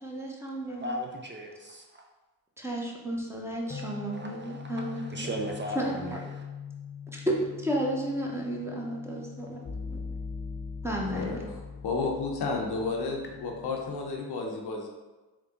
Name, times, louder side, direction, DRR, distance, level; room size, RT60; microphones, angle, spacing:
voice 1, 0.0-0.9 2.6-5.3 5.7-6.3 7.1-9.6 9.9-10.0 10.8-11.4, right 1 dB, 5° right, -2 dB, 0.9 m, -33 dB
voice 2, 0.8-1.9 4.1-6.4, equal, 25° right, 1 dB, 0.5 m, -37 dB
sound 1, 3.7-14.2, left 5 dB, 25° left, 0.6 m, -41 dB
voice 3, 11.1-14.9, left 3 dB, 70° left, 1 dB, 0.8 m, -32 dB
3.5 x 2.3 x 3.7 m, 1.2 s
supercardioid pair, 45°, 41 cm